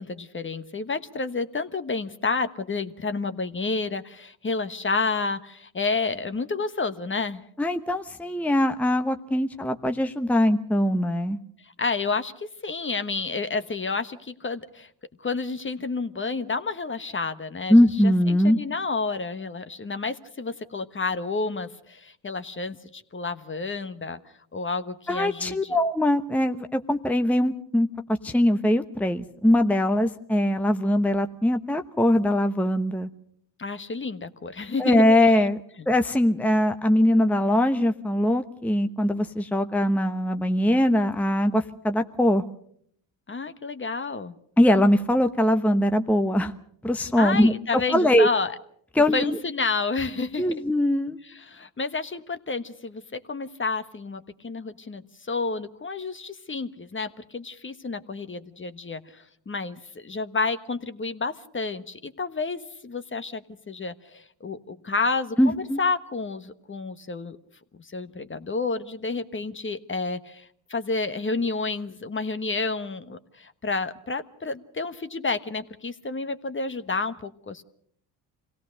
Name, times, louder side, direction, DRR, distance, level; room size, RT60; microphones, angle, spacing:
voice 1, 0.0-7.4 11.6-14.9 15.2-24.2 24.5-25.7 33.6-35.4 43.3-44.3 47.2-48.6 49.1-50.5 51.2-67.4 67.8-77.6, left 4 dB, 25° left, 11 dB, 1.3 m, -30 dB
voice 2, 7.6-11.4 17.7-18.6 25.1-27.9 28.2-33.1 34.8-35.6 35.9-42.4 44.6-46.5 46.8-47.5 47.9-48.3 49.0-49.4 50.4-51.2 65.4-65.8, left 1 dB, 5° left, 7 dB, 1.0 m, -21 dB
25.0 x 17.0 x 6.5 m, 0.65 s
supercardioid pair, 70°, 43 cm